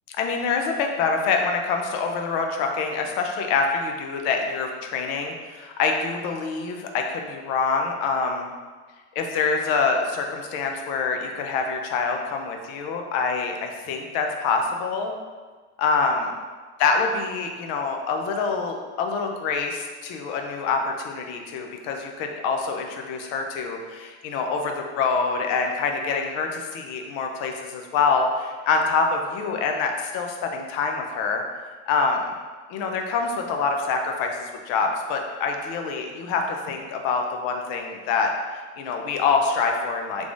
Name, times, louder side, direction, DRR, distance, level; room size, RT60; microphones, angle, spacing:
voice 1, 0.1-8.5 9.2-15.1 15.8-16.2 16.8-31.4 31.9-32.2 32.7-40.3, left 4 dB, 45° left, 3 dB, 0.5 m, -25 dB
3.4 x 3.3 x 2.5 m, 1.4 s
supercardioid pair, 140°, 35 cm